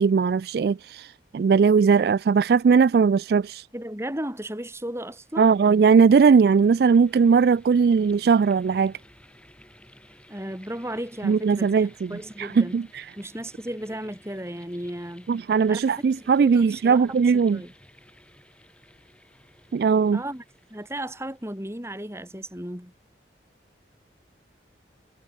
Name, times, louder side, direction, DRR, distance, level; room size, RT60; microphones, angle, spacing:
voice 1, 0.0-3.6 5.4-8.9 11.2-12.1 12.4-13.0 15.3-17.6 19.7-20.2, right 5 dB, 60° right, 0.3 m, -19 dB
voice 2, 3.7-5.5 10.3-12.8 13.2-15.3 15.7-17.7 20.1-20.4 20.7-22.9, right 1 dB, 15° right, 3.8 m, -35 dB
sound 1, 5.1-21.8, left 1 dB, 5° left, 6.2 m, -55 dB
head